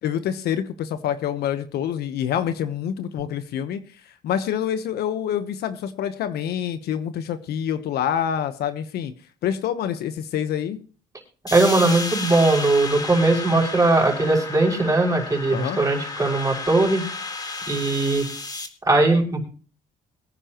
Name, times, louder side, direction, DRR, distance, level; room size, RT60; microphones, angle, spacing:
voice 1, 0.0-3.8 4.2-9.1 9.4-10.8 15.5-15.8, left 9 dB, 70° left, 10 dB, 1.1 m, -26 dB
sound 1, 11.5-18.7, left 3 dB, 20° left, 1.9 m, -32 dB
voice 2, 11.5-17.0 17.7-18.3 18.8-19.4, right 2 dB, 20° right, -1 dB, 5.9 m, -19 dB
23.0 x 9.9 x 3.1 m, 0.40 s
cardioid pair, 110°, 17 cm